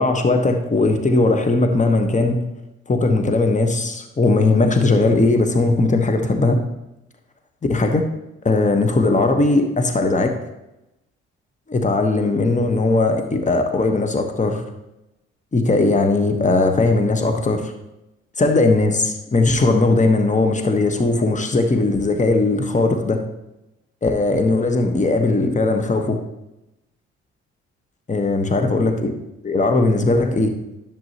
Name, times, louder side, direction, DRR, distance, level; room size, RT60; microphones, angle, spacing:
voice 1, 0.0-2.4 2.9-6.6 7.7-8.0 8.4-10.4 11.7-14.6 15.5-17.7 18.4-23.2 24.0-26.2 28.1-29.1 29.4-30.5, left 2 dB, 20° left, 6 dB, 1.2 m, -18 dB
10.5 x 7.2 x 2.9 m, 0.92 s
hypercardioid pair, 45°, 34 cm